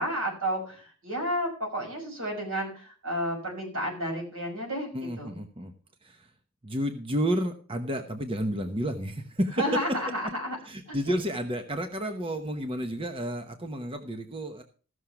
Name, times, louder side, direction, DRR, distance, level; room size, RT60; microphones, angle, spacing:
voice 1, 0.0-4.9 5.2-5.3 9.6-10.6, equal, 85° right, 1 dB, 5.9 m, -31 dB
voice 2, 4.9-5.7 6.0-6.3 6.6-10.0 10.6-14.6, equal, 25° right, 6 dB, 1.0 m, -31 dB
15.0 x 6.4 x 5.9 m, 0.39 s
head